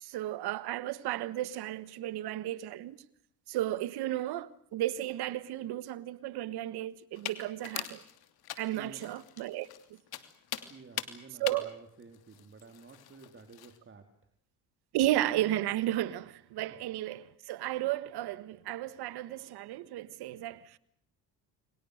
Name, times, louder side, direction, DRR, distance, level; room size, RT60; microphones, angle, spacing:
voice 1, 0.0-3.0 3.5-8.0 8.6-9.7 11.4-11.7 14.9-20.8, right 14 dB, 75° right, 1.6 m, -33 dB
sound 1, 7.1-13.8, left 12 dB, 70° left, 3.0 m, -43 dB
voice 2, 8.7-9.1 9.6-9.7 10.6-14.3, right 4 dB, 30° right, 3.6 m, -52 dB
29.5 x 24.0 x 6.6 m
cardioid pair, 90°, 39 cm